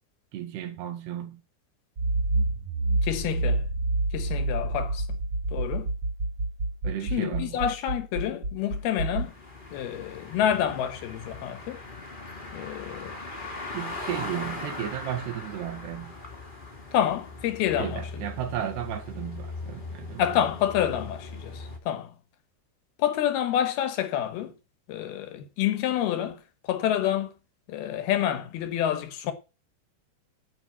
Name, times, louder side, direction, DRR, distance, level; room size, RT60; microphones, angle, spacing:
voice 1, 0.3-1.4 6.8-7.6 13.7-16.2 17.8-20.2, right 11 dB, 80° right, 3.9 m, -34 dB
Accelerating revving vroom, 2.0-9.2, right 2 dB, 60° right, 1.0 m, -28 dB
voice 2, 3.0-3.6 4.1-5.1 5.5-5.9 7.1-9.3 9.7-11.8 12.5-13.1 16.9-18.0 20.2-22.1 23.0-24.5 24.9-27.3 27.7-29.3, left 10 dB, 75° left, 3.0 m, -28 dB
sound 1, 8.6-21.8, left 3 dB, 20° left, 1.5 m, -40 dB
9.2 x 6.8 x 8.5 m
omnidirectional pair, 4.7 m